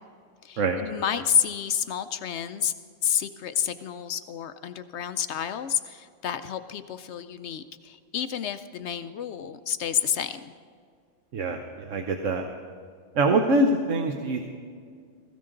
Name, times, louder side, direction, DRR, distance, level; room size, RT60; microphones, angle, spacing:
voice 1, 0.4-2.7 3.0-10.5, left 8 dB, 70° left, 11 dB, 0.8 m, -29 dB
voice 2, 11.3-12.4 13.2-14.5, right 2 dB, 75° right, 4 dB, 1.2 m, -24 dB
17.5 x 16.0 x 3.8 m, 2.1 s
omnidirectional pair, 1.3 m